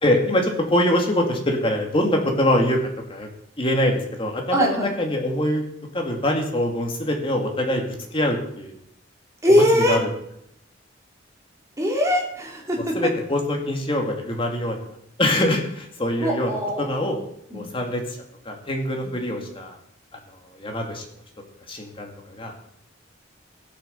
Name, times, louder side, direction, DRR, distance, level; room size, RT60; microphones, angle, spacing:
voice 1, 0.0-3.3 3.6-5.6 5.9-7.8 8.1-8.7 9.9-10.1 12.9-14.8 15.2-16.5 16.8-17.2 17.5-18.2 18.4-19.8 20.5-21.0 21.7-22.5, left 1 dB, 30° left, 2 dB, 2.3 m, -24 dB
voice 2, 4.5-4.9 9.4-10.0 11.8-13.0 16.2-17.1 17.5-17.7 19.0-19.1, equal, 15° right, -1 dB, 3.1 m, -21 dB
15.5 x 6.9 x 6.9 m, 0.73 s
head